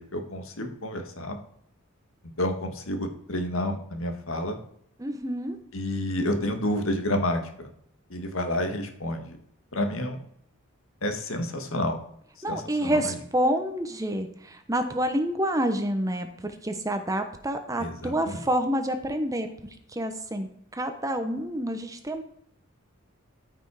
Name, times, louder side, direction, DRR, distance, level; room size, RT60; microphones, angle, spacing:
voice 1, 0.0-1.4 2.4-4.6 5.7-7.4 8.1-9.4 9.7-10.2 11.0-12.0 12.5-13.0 17.8-18.4, left 1 dB, 70° left, 6 dB, 1.8 m, -29 dB
voice 2, 5.0-5.6 12.4-19.5 19.9-22.2, right 1 dB, 15° right, 7 dB, 1.0 m, -28 dB
13.5 x 5.9 x 4.9 m, 0.71 s
head